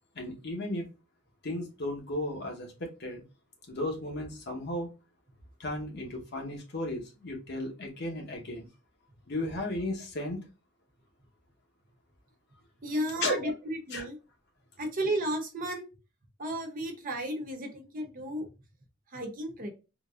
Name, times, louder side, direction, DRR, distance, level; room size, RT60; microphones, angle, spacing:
voice 1, 0.1-0.9 1.4-3.2 3.7-4.9 5.6-8.7 9.3-10.5 13.2-13.5 13.9-14.1, left 1 dB, 60° left, 1 dB, 1.1 m, -34 dB
voice 2, 12.8-14.2 14.8-15.9 16.4-18.5 19.1-19.7, right 1 dB, 45° right, 3 dB, 0.7 m, -33 dB
3.8 x 2.4 x 2.4 m, 0.29 s
head